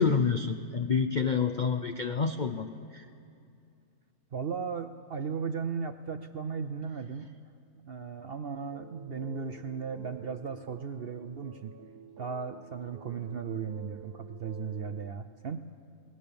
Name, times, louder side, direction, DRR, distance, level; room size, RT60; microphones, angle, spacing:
voice 1, 0.0-3.1, left 5 dB, 55° left, 7 dB, 0.5 m, -28 dB
voice 2, 4.3-7.3 7.8-11.7 12.2-15.7, right 6 dB, 60° right, 9 dB, 0.6 m, -36 dB
sound 1, 8.7-15.1, right 9 dB, 80° right, 1.3 m, -50 dB
26.0 x 19.5 x 7.0 m, 2.5 s
omnidirectional pair, 1.6 m